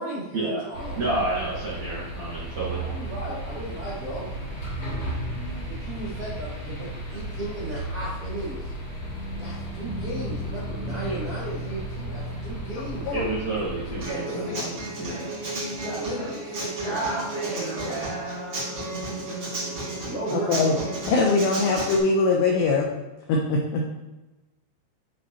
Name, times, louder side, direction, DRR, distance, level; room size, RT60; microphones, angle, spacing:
voice 1, 0.0-1.0 2.8-4.3 5.6-8.7 9.4-13.1 13.9-14.6 15.8-18.1 20.0-20.8, right 1 dB, 80° right, -9 dB, 1.3 m, -35 dB
sound 1, 0.7-14.0, right 1 dB, 40° left, 2.6 m, -35 dB
voice 2, 1.0-2.8 11.0-11.2 13.1-15.3, right 2 dB, 60° right, -10 dB, 2.0 m, -30 dB
sound 2, 8.7-15.6 15.9-16.4 16.7-16.8, right 1 dB, 60° left, 3.3 m, -38 dB
Human voice / Acoustic guitar, 14.0-22.0, right 2 dB, 35° right, 2.2 m, -32 dB
voice 3, 20.3-20.8 21.1-22.9 23.3-23.8, left 3 dB, 90° left, 0 dB, 2.4 m, -22 dB
11.0 x 4.0 x 2.9 m, 1.1 s
omnidirectional pair, 5.8 m